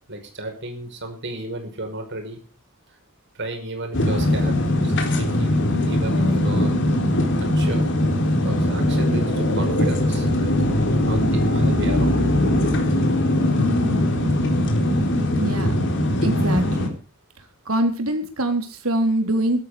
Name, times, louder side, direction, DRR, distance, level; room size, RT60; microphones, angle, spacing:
voice 1, 0.1-2.4 3.4-6.7 7.4-7.9 8.4-12.2, right 2 dB, 55° right, 4 dB, 5.4 m, -34 dB
sound 1, 3.9-16.9, left 1 dB, 60° left, 4.1 m, -20 dB
voice 2, 15.4-15.8 16.2-16.9 17.7-19.6, right 1 dB, 80° right, 6 dB, 3.7 m, -23 dB
17.5 x 12.5 x 5.0 m, 0.38 s
head